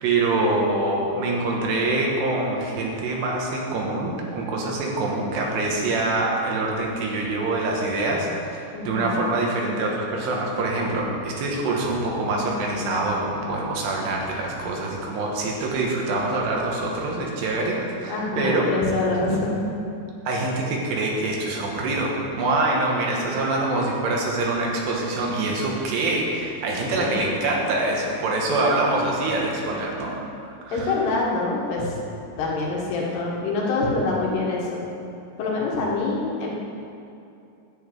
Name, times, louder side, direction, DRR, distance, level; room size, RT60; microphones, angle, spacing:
voice 1, 0.0-18.7 20.3-22.1 22.4-30.1 30.4-31.0, right 2 dB, 75° right, -1 dB, 3.4 m, -25 dB
voice 2, 8.7-9.2 18.1-19.7 27.0-27.2 30.7-31.9 32.4-34.8 35.4-36.5, left 3 dB, 70° left, -3 dB, 3.5 m, -25 dB
10.5 x 5.6 x 8.4 m, 2.6 s
omnidirectional pair, 5.1 m